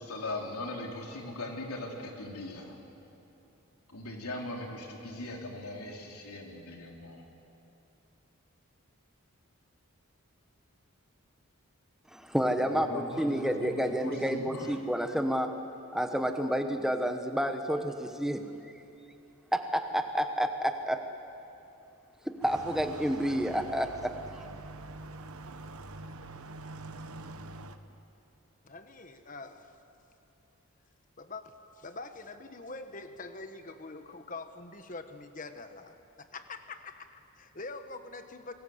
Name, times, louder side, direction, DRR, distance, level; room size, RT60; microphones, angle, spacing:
voice 1, 0.0-2.8 3.9-7.2 12.6-14.8, left 2 dB, 85° left, 1 dB, 3.7 m, -40 dB
voice 2, 12.1-15.5 15.9-18.7 19.5-21.1 22.2-24.5, equal, ahead, 6 dB, 1.2 m, -30 dB
sound 1, 22.4-27.8, right 2 dB, 80° right, 1.1 m, -45 dB
voice 3, 28.6-29.8 31.2-38.5, left 3 dB, 35° left, 8 dB, 1.3 m, -44 dB
27.5 x 21.0 x 8.0 m, 2.8 s
head